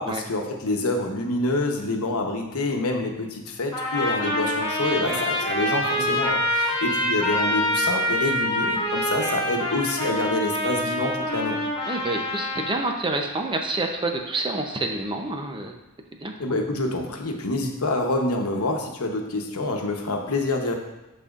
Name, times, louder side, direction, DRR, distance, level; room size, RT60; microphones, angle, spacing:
voice 1, 0.0-11.6 16.4-20.7, left 2 dB, 75° left, 2 dB, 1.0 m, -27 dB
Trumpet, 3.7-12.8, left 1 dB, 25° left, 2.1 m, -26 dB
voice 2, 11.9-15.7 16.2-16.6, right 2 dB, 25° right, 3 dB, 0.7 m, -28 dB
12.5 x 4.2 x 2.5 m, 1.0 s
head